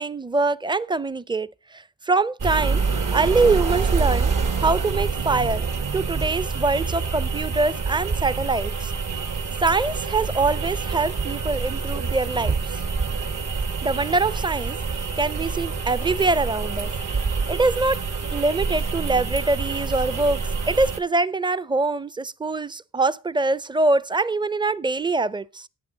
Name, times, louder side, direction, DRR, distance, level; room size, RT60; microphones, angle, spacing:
voice 1, 0.0-2.8 3.1-4.3 4.6-5.7 5.9-8.9 9.6-12.7 13.8-16.9 17.5-18.1 18.3-20.4 20.7-25.7, right 3 dB, 15° right, 0.5 m, -24 dB
sound 1, 2.4-21.0, right 4 dB, 65° right, 1.6 m, -26 dB
11.0 x 8.7 x 3.9 m
cardioid pair, 60°, 34 cm